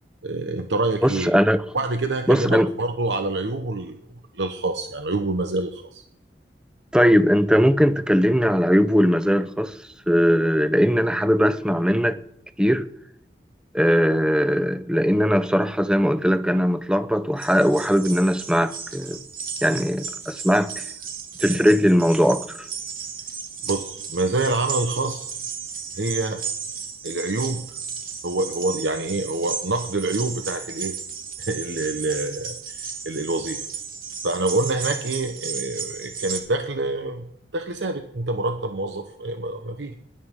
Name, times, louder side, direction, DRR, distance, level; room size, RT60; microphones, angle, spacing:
voice 1, 0.2-1.3 1.7-4.0 4.3-6.0 23.6-25.3 26.0-26.4 27.0-27.8 28.2-31.0 31.4-33.6 34.2-37.2 37.5-39.9, right 2 dB, 90° right, 1.0 m, -26 dB
voice 2, 1.0-1.6 2.3-2.7 6.9-9.8 10.1-12.2 12.6-12.9 13.7-19.2 19.6-20.8 21.4-22.6, equal, 5° right, 0.6 m, -19 dB
sound 1, 17.4-36.4, right 6 dB, 55° right, 2.0 m, -34 dB
19.5 x 11.0 x 3.8 m
head